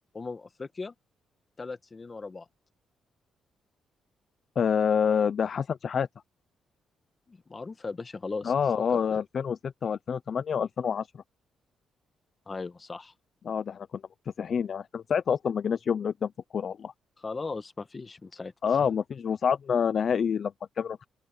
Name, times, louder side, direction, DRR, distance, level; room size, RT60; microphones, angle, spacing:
voice 1, 0.1-0.9 1.6-2.5 7.3-8.5 8.9-9.2 12.5-13.1 17.2-18.5, left 4 dB, 25° left, 1.5 m, -38 dB
voice 2, 4.6-6.1 8.4-11.1 13.5-13.9 14.4-16.9 18.6-21.0, left 7 dB, 45° left, 0.5 m, -27 dB
open air
cardioid pair, 125°, 0 cm